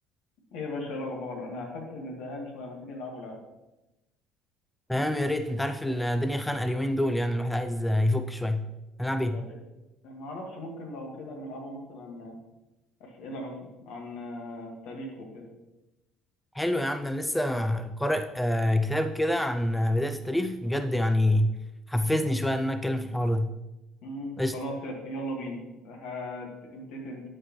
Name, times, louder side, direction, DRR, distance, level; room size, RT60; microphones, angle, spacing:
voice 1, 0.5-3.4 9.3-9.6 10.0-12.4 13.0-13.6 13.9-15.5 24.0-27.2, left 1 dB, 75° left, 0 dB, 1.8 m, -38 dB
voice 2, 4.9-8.7 9.0-9.4 16.5-21.6 21.9-23.5 24.4-24.6, left 1 dB, 5° left, 8 dB, 0.5 m, -26 dB
10.5 x 4.8 x 3.1 m, 0.98 s
supercardioid pair, 70°, 0 cm